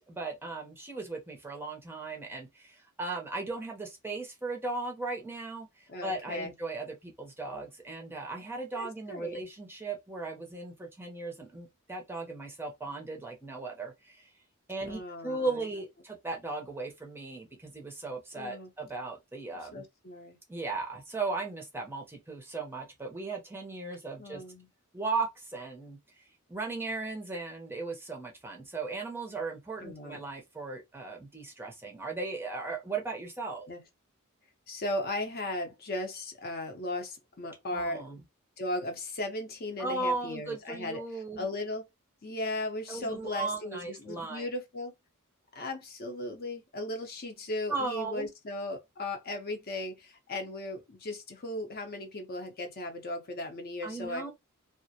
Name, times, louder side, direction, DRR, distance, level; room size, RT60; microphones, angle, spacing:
voice 1, 0.0-14.3 14.7-19.8 20.5-24.4 24.9-26.2 26.5-33.7 37.7-38.2 39.8-41.4 42.9-44.5 47.7-48.3 53.8-54.3, right 3 dB, 10° right, 0.5 m, -37 dB
voice 2, 5.9-6.5 8.7-9.4 14.9-15.6 18.3-18.7 19.7-20.4 24.2-24.7 29.8-30.2 33.7-33.8 34.7-38.2 38.6-41.9 42.2-44.9 45.5-54.3, left 1 dB, 45° left, 0.6 m, -37 dB
2.3 x 2.0 x 2.6 m
head